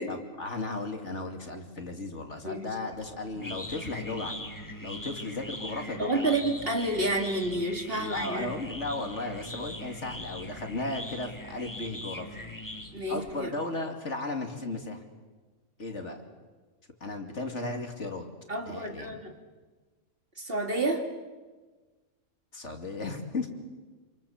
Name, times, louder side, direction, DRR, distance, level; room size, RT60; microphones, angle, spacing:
voice 1, 0.1-4.5 4.8-6.4 8.0-12.4 13.1-15.0 15.8-16.2 17.0-18.2 18.7-19.2 22.5-23.5, left 2 dB, 55° left, 4 dB, 3.0 m, -35 dB
sound 1, 2.9-13.3, left 1 dB, 15° left, 2.3 m, -41 dB
voice 2, 6.0-8.5 12.9-13.5 18.5-19.3 20.4-21.0, right 2 dB, 40° right, 4 dB, 2.8 m, -29 dB
28.0 x 28.0 x 7.3 m, 1.3 s
omnidirectional pair, 1.5 m